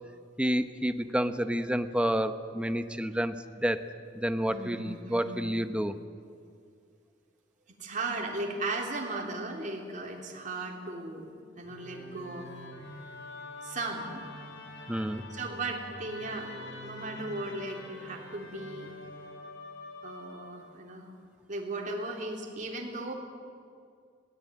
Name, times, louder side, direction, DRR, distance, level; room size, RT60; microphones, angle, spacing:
voice 1, 0.4-3.3 3.6-3.8 4.1-5.9 14.9-15.2, equal, 5° right, 9 dB, 0.9 m, -29 dB
voice 2, 4.5-5.7 7.8-11.3 11.6-12.5 12.8-12.9 13.6-14.2 15.3-16.5 16.8-18.9 20.0-21.1 21.5-23.1, right 2 dB, 45° right, 0 dB, 3.5 m, -36 dB
Musical instrument, 11.6-20.8, left 2 dB, 85° left, 3.9 m, -45 dB
22.0 x 18.0 x 9.2 m, 2.2 s
head